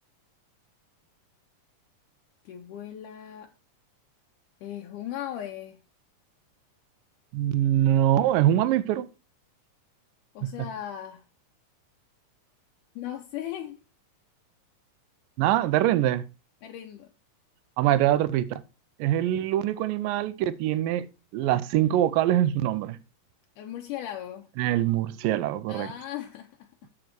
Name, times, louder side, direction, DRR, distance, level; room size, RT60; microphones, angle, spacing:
voice 1, 2.5-3.5 4.6-5.8 10.4-11.2 13.0-13.8 16.6-17.1 23.6-24.5 25.7-26.9, left 11 dB, 75° left, 2.2 m, -37 dB
voice 2, 7.3-9.1 10.4-10.5 15.4-16.3 17.8-18.6 19.0-21.1 21.3-23.0 24.6-25.9, right 12 dB, 85° right, 2.4 m, -23 dB
7.5 x 7.3 x 4.5 m
omnidirectional pair, 3.9 m